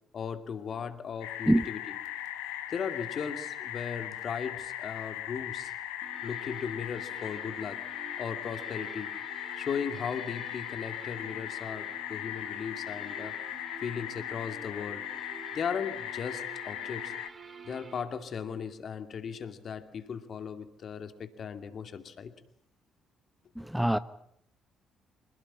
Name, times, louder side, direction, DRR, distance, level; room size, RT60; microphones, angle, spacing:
voice 1, 0.1-2.0 2.7-5.7 6.2-7.8 8.2-9.1 9.6-13.3 13.8-15.0 15.5-17.1 17.7-22.3, left 7 dB, 50° left, 2.5 m, -37 dB
sound 1, 1.2-17.3, left 12 dB, 70° left, 1.8 m, -39 dB
sound 2, 6.0-18.0, right 4 dB, 40° right, 5.2 m, -49 dB
voice 2, 23.6-24.0, equal, ahead, 1.1 m, -24 dB
26.0 x 18.5 x 8.8 m
figure-of-eight pair, 45°, 0 cm